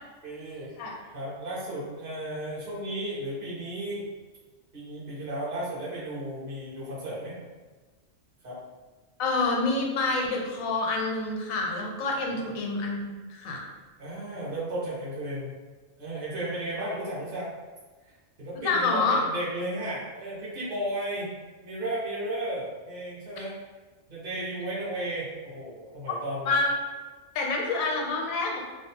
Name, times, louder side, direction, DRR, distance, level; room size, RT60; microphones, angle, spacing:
voice 1, 0.2-4.1 4.7-7.4 8.4-8.6 12.3-12.5 14.0-15.5 16.0-17.5 18.0-21.3 21.6-23.5 24.1-26.6, right 1 dB, 45° right, -8 dB, 1.1 m, -34 dB
voice 2, 9.2-13.6 18.6-19.2 26.5-26.7 27.3-28.6, left 3 dB, 85° left, 0 dB, 1.0 m, -27 dB
2.6 x 2.3 x 2.8 m, 1.3 s
omnidirectional pair, 1.4 m